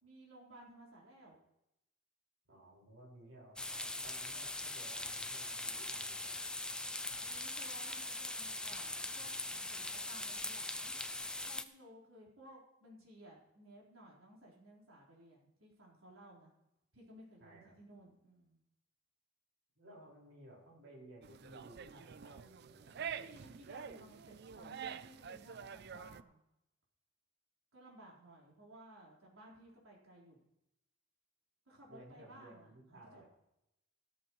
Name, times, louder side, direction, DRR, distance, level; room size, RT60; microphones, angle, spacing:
voice 1, 0.0-1.4 7.2-11.0 11.4-16.5 16.9-18.6 23.0-26.4 27.7-30.4 31.7-32.7 33.1-33.2, right 1 dB, 85° right, -4 dB, 4.4 m, -58 dB
voice 2, 2.5-6.6 7.1-7.5 17.4-17.8 19.8-23.0 31.9-33.2, right 1 dB, 70° right, -4 dB, 5.3 m, -57 dB
sound 1, 3.6-11.6, left 2 dB, 5° left, 0.5 m, -41 dB
sound 2, 21.2-26.2, right 7 dB, 55° right, 0.4 m, -47 dB
15.5 x 13.5 x 3.2 m, 0.86 s
head